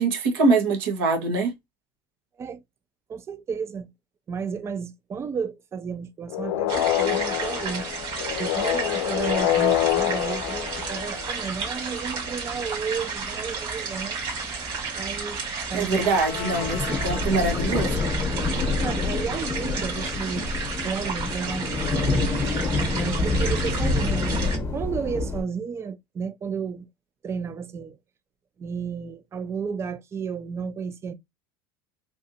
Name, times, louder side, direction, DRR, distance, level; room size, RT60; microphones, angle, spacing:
voice 1, 0.0-1.5 15.7-18.0, right 3 dB, 80° right, 1.3 m, -23 dB
voice 2, 3.1-3.9 4.3-7.9 8.4-14.2 14.9-15.4 15.7-16.1 17.1-17.2 18.8-20.5 20.8-22.1 22.9-24.2 24.7-26.9 27.2-28.0 28.6-31.1, right 6 dB, 20° right, 0.4 m, -32 dB
sound 1, 6.3-11.6 15.9-17.6, left 13 dB, 85° left, 0.4 m, -27 dB
sound 2, 6.7-24.6, right 4 dB, 50° right, 1.9 m, -32 dB
sound 3, 9.2-11.7 11.9-12.0 12.2-14.0 14.3-14.4 14.6-25.4, left 3 dB, 20° left, 0.9 m, -27 dB
3.3 x 2.6 x 2.7 m
supercardioid pair, 120°, 12 cm